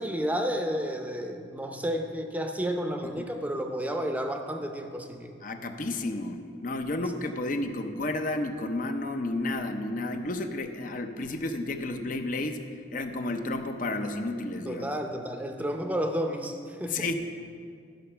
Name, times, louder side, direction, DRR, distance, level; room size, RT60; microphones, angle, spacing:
voice 1, 0.0-5.4 14.7-17.1, equal, 10° right, 4 dB, 0.6 m, -31 dB
voice 2, 5.4-12.6 12.9-14.9 16.8-17.1, left 2 dB, 45° left, 6 dB, 0.6 m, -31 dB
12.0 x 6.7 x 5.5 m, 2.3 s
head